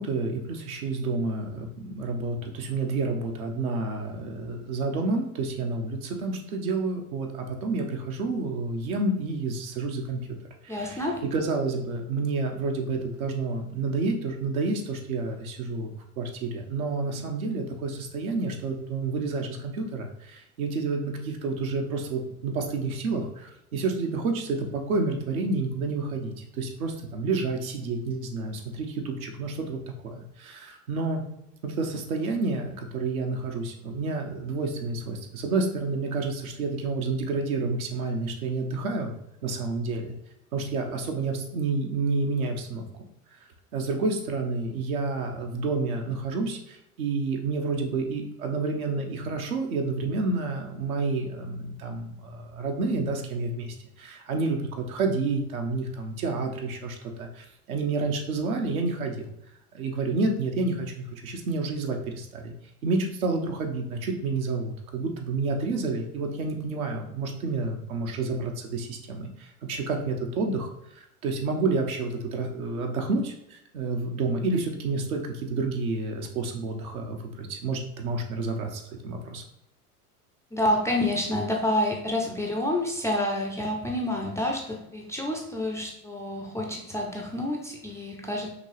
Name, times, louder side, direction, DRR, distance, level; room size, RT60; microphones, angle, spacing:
voice 1, 0.0-10.2 10.6-11.0 11.3-29.8 30.0-31.2 31.6-39.1 39.4-40.1 40.5-42.9 43.7-59.3 59.7-62.5 62.8-70.7 71.0-79.4, right 3 dB, 65° right, 3 dB, 1.0 m, -29 dB
voice 2, 10.7-11.2 80.5-88.5, left 1 dB, 5° left, 0 dB, 0.4 m, -28 dB
5.2 x 3.0 x 3.1 m, 0.81 s
figure-of-eight pair, 75°, 46 cm